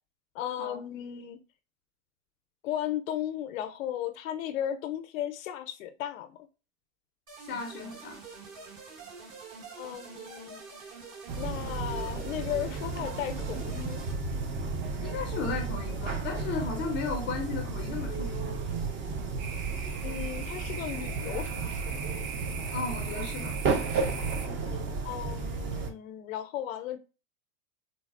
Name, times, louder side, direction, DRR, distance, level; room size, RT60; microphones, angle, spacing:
voice 1, 0.3-1.4 2.6-6.4 9.8-10.6 11.3-14.0 20.0-22.1 25.0-27.0, left 11 dB, 75° left, 0.5 m, -35 dB
sound 1, 7.3-14.1, right 5 dB, 45° right, 1.2 m, -46 dB
voice 2, 7.4-8.2 15.0-18.5 22.7-23.6, left 4 dB, 30° left, 0.4 m, -35 dB
sound 2, 11.3-25.9, right 4 dB, 30° right, 0.5 m, -33 dB
sound 3, 19.4-24.5, right 6 dB, 85° right, 0.9 m, -41 dB
3.8 x 2.0 x 2.4 m
hypercardioid pair, 105°, 40 cm